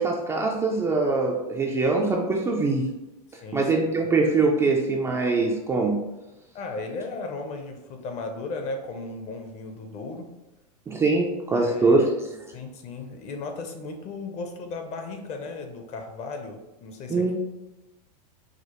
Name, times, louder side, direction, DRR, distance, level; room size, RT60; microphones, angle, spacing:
voice 1, 0.0-2.9 3.5-6.0 10.9-12.1 12.3-12.4 17.1-17.3, right 3 dB, 15° right, -1 dB, 0.3 m, -23 dB
voice 2, 3.3-3.6 6.5-10.3 11.5-12.1 12.5-17.3, left 3 dB, 35° left, 4 dB, 0.6 m, -36 dB
4.8 x 2.0 x 2.9 m, 0.99 s
hypercardioid pair, 125°, 21 cm